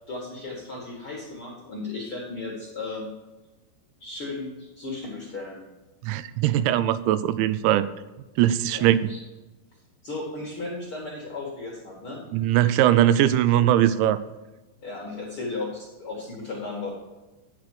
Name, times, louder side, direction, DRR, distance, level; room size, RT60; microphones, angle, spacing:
voice 1, 0.1-3.1 4.0-5.6 8.7-9.2 10.0-12.2 14.8-16.9, left 3 dB, 70° left, -3 dB, 1.2 m, -35 dB
voice 2, 6.0-7.9 8.4-9.0 12.3-14.2, right 12 dB, 85° right, 14 dB, 2.8 m, -20 dB
10.5 x 6.0 x 6.6 m, 1.1 s
omnidirectional pair, 5.5 m